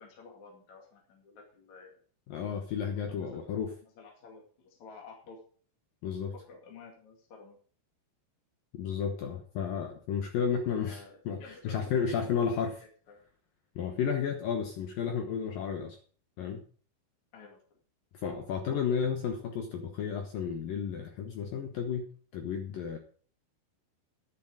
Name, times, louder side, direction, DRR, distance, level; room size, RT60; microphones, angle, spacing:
voice 1, 0.0-2.0 2.9-5.4 6.3-7.6 10.6-13.2 17.3-17.6, left 4 dB, 45° left, 0 dB, 3.1 m, -52 dB
voice 2, 2.3-3.7 6.0-6.3 8.7-12.8 13.8-16.0 16.4-16.6 18.1-23.0, left 7 dB, 70° left, 5 dB, 2.3 m, -32 dB
10.5 x 10.0 x 4.9 m, 0.43 s
omnidirectional pair, 5.2 m